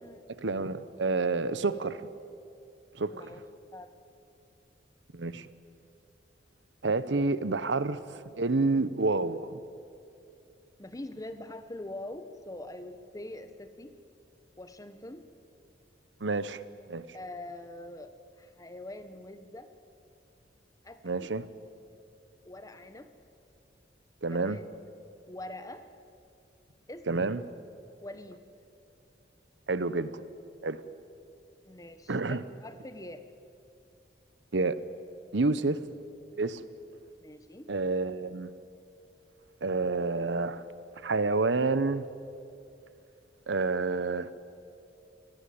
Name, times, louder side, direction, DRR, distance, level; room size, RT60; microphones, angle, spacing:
voice 1, 0.4-2.1 2.9-3.2 5.1-5.5 6.8-9.5 16.2-16.6 16.9-17.0 21.0-21.5 24.2-24.6 27.1-27.4 29.7-30.2 30.6-30.8 32.1-32.4 34.5-34.8 35.3-35.8 36.4-36.6 37.7-38.5 39.6-40.6 41.0-42.1 43.5-44.3, right 3 dB, 90° right, 15 dB, 0.9 m, -29 dB
voice 2, 3.1-3.4 3.7-3.9 10.8-14.0 14.6-15.2 17.1-19.7 20.8-21.3 22.4-23.1 24.3-24.6 25.3-25.8 26.9-27.3 28.0-28.4 31.6-33.2 37.2-37.7, left 1 dB, 20° left, 9 dB, 1.3 m, -44 dB
28.0 x 18.5 x 8.8 m, 2.6 s
head